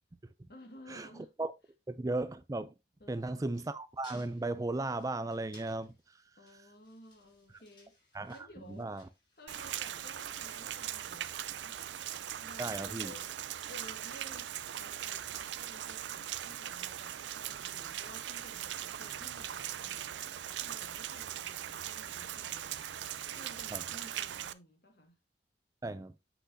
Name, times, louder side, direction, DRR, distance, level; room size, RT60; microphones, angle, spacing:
voice 1, 0.5-1.3 3.0-3.5 6.4-9.0 9.4-11.8 12.4-13.3 13.7-25.2, left 1 dB, 60° left, 1.9 m, -55 dB
voice 2, 1.9-2.7 3.1-6.2 8.1-8.4 8.7-9.1 12.6-13.1 23.7-23.8 25.8-26.1, right 2 dB, 20° right, 0.4 m, -36 dB
sound 1, 2.9-11.2, left 2 dB, 25° left, 3.2 m, -62 dB
Rain, 9.5-24.5, right 11 dB, 80° right, 0.5 m, -40 dB
8.0 x 6.1 x 2.7 m
head